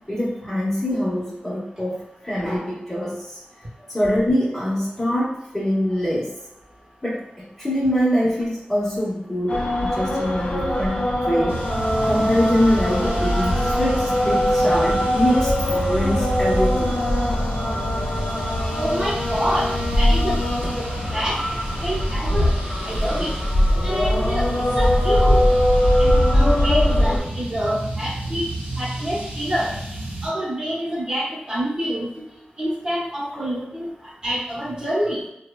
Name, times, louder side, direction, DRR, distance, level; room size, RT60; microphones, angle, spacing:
voice 1, 0.1-2.0 2.2-3.4 3.9-6.3 7.0-11.6 12.1-17.0, equal, 15° left, -7 dB, 0.9 m, -24 dB
Muezzin or Muazzin - prayer call in Arabic - Jaffa Israel, 9.5-27.2, left 1 dB, 45° left, 0.5 m, -21 dB
sound 1, 11.5-30.3, right 1 dB, 85° right, 0.7 m, -32 dB
voice 2, 18.8-20.4 20.8-20.9 21.1-21.4 21.8-22.5 22.8-23.3 23.8-24.5 24.8-25.4 26.0-28.5 28.8-29.7 30.2-32.1 32.6-33.9 34.2-35.2, equal, 30° right, -7 dB, 0.9 m, -27 dB
3.0 x 2.1 x 2.2 m, 0.84 s
wide cardioid pair, 95°, 3 cm